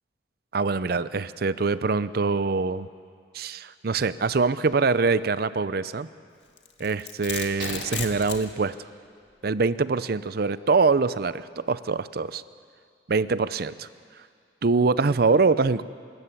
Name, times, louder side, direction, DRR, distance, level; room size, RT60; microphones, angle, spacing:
voice 1, 0.5-2.9 3.3-6.1 6.8-8.7 9.4-12.4 13.1-13.9 14.6-15.8, right 4 dB, 55° right, 15 dB, 0.6 m, -24 dB
Domestic sounds home sounds, 6.6-8.5, left 7 dB, 85° left, 1.7 m, -34 dB
sound 1, 7.6-9.5 9.8-9.9 10.5-10.6, right 3 dB, 75° right, 3.4 m, -42 dB
27.0 x 13.5 x 8.3 m, 2.1 s
head